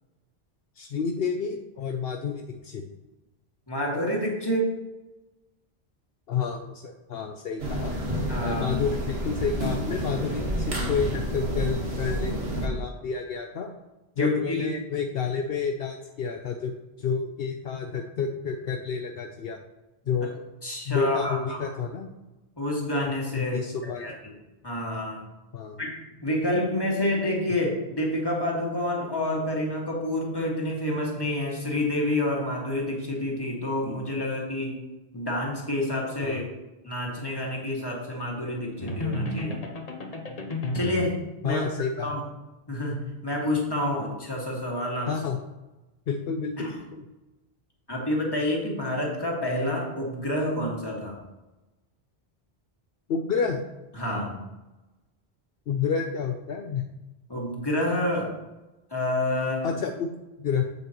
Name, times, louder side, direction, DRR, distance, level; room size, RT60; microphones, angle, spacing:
voice 1, 0.8-2.9 6.3-8.0 8.4-13.7 14.2-19.6 20.1-20.4 20.9-22.1 23.3-24.2 25.5-25.8 36.2-36.4 41.4-42.1 45.1-45.4 46.1-47.0 53.1-53.6 55.7-56.8 59.6-60.1 60.4-60.6, left 6 dB, 70° left, 4 dB, 0.8 m, -30 dB
voice 2, 3.7-4.8 8.3-8.8 14.2-14.7 20.6-21.7 22.6-23.6 23.8-24.1 24.6-25.2 25.8-34.8 35.1-36.4 36.8-39.6 40.7-41.6 42.0-42.2 42.7-45.1 46.6-46.7 47.9-51.2 53.9-54.4 57.3-58.3 58.9-59.7, left 1 dB, 20° left, -2 dB, 2.0 m, -28 dB
sound 1, 7.6-12.7, equal, 75° right, 1.8 m, -29 dB
sound 2, 38.8-41.2, left 1 dB, 40° left, 0.9 m, -31 dB
8.1 x 8.1 x 3.0 m, 1.0 s
omnidirectional pair, 1.1 m